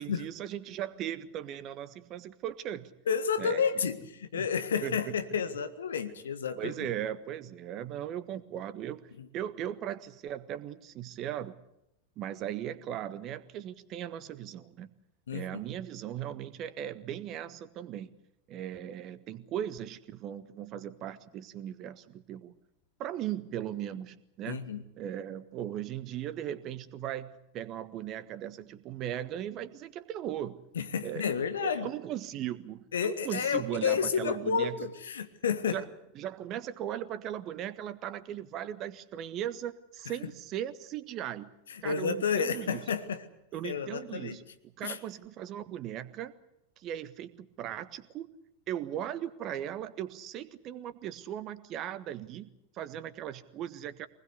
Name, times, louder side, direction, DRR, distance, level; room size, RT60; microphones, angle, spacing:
voice 1, 0.0-3.0 3.4-3.6 4.3-4.5 4.8-5.0 6.5-9.0 9.3-11.6 12.2-14.9 15.3-18.1 18.5-22.5 23.0-24.7 25.0-30.6 31.0-31.3 31.6-34.8 35.7-35.9 36.1-41.5 41.8-42.8 43.5-46.3 46.8-48.3 48.7-52.5 52.7-54.1, right 11 dB, 35° right, 14 dB, 1.5 m, -38 dB
voice 2, 3.1-6.9 9.2-9.3 15.3-15.6 24.5-24.8 30.7-31.9 32.9-35.8 41.7-43.2 43.6-44.4 44.8-45.0, left 6 dB, 65° left, 11 dB, 1.7 m, -31 dB
24.0 x 20.5 x 8.3 m, 0.81 s
figure-of-eight pair, 90°, 0 cm